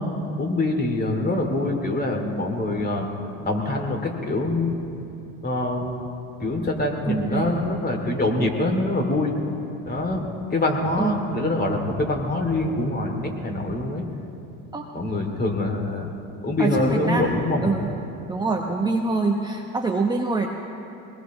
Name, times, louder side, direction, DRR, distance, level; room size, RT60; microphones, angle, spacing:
voice 1, 0.0-3.1 3.4-5.0 5.4-6.0 6.4-9.3 9.9-14.1 14.9-16.1 16.4-17.8, left 2 dB, 20° left, 2 dB, 2.7 m, -25 dB
voice 2, 7.1-7.5 11.0-11.1 14.7-14.9 16.6-17.9 18.3-20.5, right 3 dB, 10° right, 1 dB, 1.0 m, -25 dB
22.0 x 20.5 x 3.1 m, 2.7 s
supercardioid pair, 90°, 41 cm